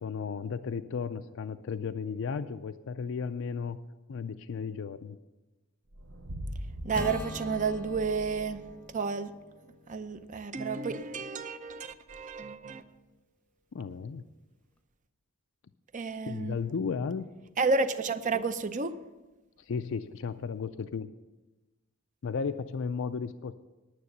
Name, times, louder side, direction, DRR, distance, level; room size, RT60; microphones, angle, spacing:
voice 1, 0.0-3.8 4.1-5.2 13.7-14.3 16.3-17.2 19.6-21.1 22.2-23.6, left 5 dB, 65° left, 10 dB, 0.4 m, -34 dB
sound 1, 5.9-8.7, equal, 70° right, 1.0 m, -41 dB
voice 2, 6.8-8.6 8.9-9.3 9.9-12.8 15.9-16.6 17.6-18.9, right 4 dB, 35° right, 11 dB, 0.6 m, -31 dB
Acoustic guitar / Strum, 6.9-11.4, left 2 dB, 5° left, 0.8 m, -44 dB
9.7 x 9.6 x 6.6 m, 1.1 s
head